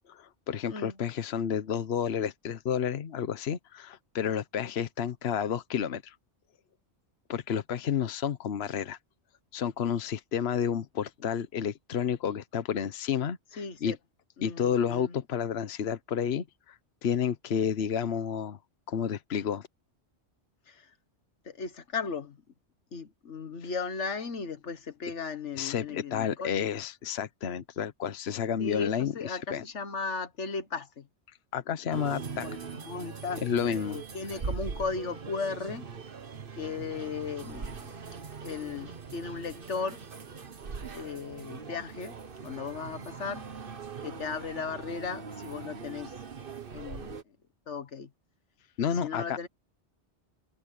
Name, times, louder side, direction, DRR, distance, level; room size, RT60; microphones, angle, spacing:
voice 1, 0.1-6.1 7.3-9.0 9.5-13.9 14.4-16.8 17.0-18.6 18.9-19.7 23.6-23.7 25.6-29.6 31.5-32.5 33.4-34.0 48.8-49.5, left 8 dB, 65° left, 1.1 m, -31 dB
voice 2, 13.6-14.0 14.4-15.2 20.7-20.9 21.4-22.4 22.9-26.5 28.6-31.1 32.4-32.6 32.8-35.9 36.6-37.8 38.4-40.0 40.9-42.2 42.4-43.5 44.0-46.1 46.7-47.2 47.7-48.1 48.8-49.5, left 5 dB, 90° left, 1.8 m, -36 dB
sound 1, 31.9-47.2, right 5 dB, 50° right, 1.4 m, -41 dB
omnidirectional pair, 1.2 m